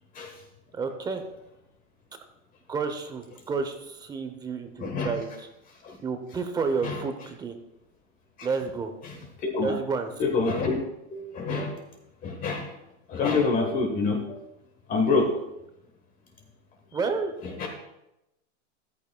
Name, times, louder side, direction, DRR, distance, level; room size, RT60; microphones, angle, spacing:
voice 1, 0.7-1.2 2.7-5.5 6.0-7.5 8.4-8.9 9.6-10.1 16.9-17.3, right 4 dB, 10° right, 7 dB, 0.7 m, -30 dB
voice 2, 4.8-5.1 5.8-6.0 6.8-7.0 9.0-9.8 10.2-10.8 11.1-11.8 12.2-12.7 13.1-14.4 14.9-15.3 17.4-17.7, left 4 dB, 20° left, 3 dB, 1.1 m, -26 dB
13.5 x 12.5 x 2.2 m, 0.89 s
supercardioid pair, 150°, 38 cm